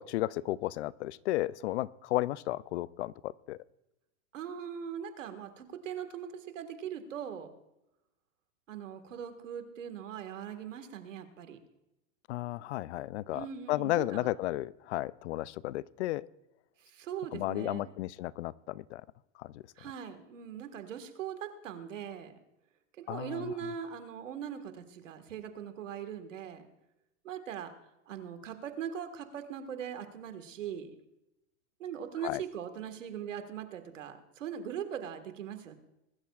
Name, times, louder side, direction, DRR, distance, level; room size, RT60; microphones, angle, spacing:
voice 1, 0.0-3.6 12.3-16.3 17.3-19.0 19.4-19.6 23.1-23.5 32.2-32.4, left 16 dB, 65° left, 20 dB, 0.5 m, -33 dB
voice 2, 4.3-7.5 8.7-11.6 13.3-14.3 16.8-17.9 19.8-22.3 23.0-26.7 27.2-27.7 28.1-30.9 31.8-35.7, right 8 dB, 85° right, 8 dB, 1.7 m, -40 dB
21.0 x 12.5 x 2.4 m, 0.89 s
hypercardioid pair, 140°, 37 cm